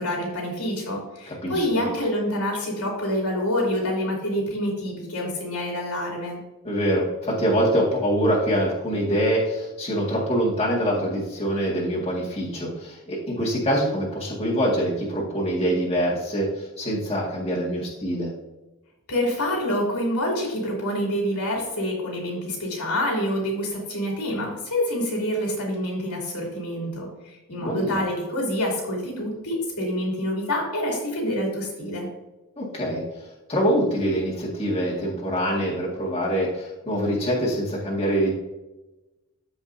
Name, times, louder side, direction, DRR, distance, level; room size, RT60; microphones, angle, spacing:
voice 1, 0.0-6.4 19.1-32.1, left 1 dB, 90° left, -2 dB, 3.0 m, -27 dB
voice 2, 1.3-1.8 6.6-18.3 27.6-28.0 32.6-33.0 33.5-38.3, equal, 25° left, -5 dB, 1.9 m, -24 dB
14.0 x 5.1 x 2.7 m, 1.0 s
head